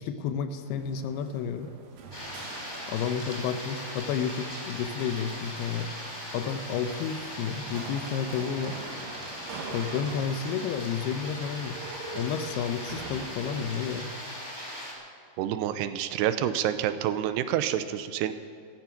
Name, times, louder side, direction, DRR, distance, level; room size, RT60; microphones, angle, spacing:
voice 1, 0.0-1.7 2.9-5.9 6.3-8.8 9.7-11.8 12.1-14.1, left 7 dB, 80° left, 9 dB, 2.7 m, -31 dB
sound 1, 0.6-13.7, right 4 dB, 65° right, 3.0 m, -45 dB
sound 2, 2.1-14.9, equal, 10° left, 2.1 m, -39 dB
voice 2, 15.4-18.3, right 11 dB, 85° right, 11 dB, 2.7 m, -28 dB
14.5 x 14.0 x 5.9 m, 2.4 s
omnidirectional pair, 4.7 m